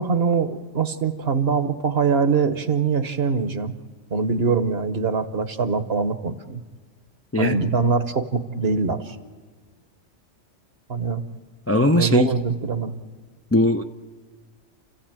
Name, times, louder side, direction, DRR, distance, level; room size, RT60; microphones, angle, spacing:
voice 1, 0.0-3.7 4.1-6.6 7.4-9.2 10.9-11.2 11.9-13.0, right 5 dB, 55° right, 11 dB, 1.3 m, -23 dB
voice 2, 11.7-12.3 13.5-13.8, left 1 dB, 15° left, 6 dB, 0.5 m, -19 dB
29.5 x 15.0 x 8.9 m, 1.5 s
omnidirectional pair, 1.3 m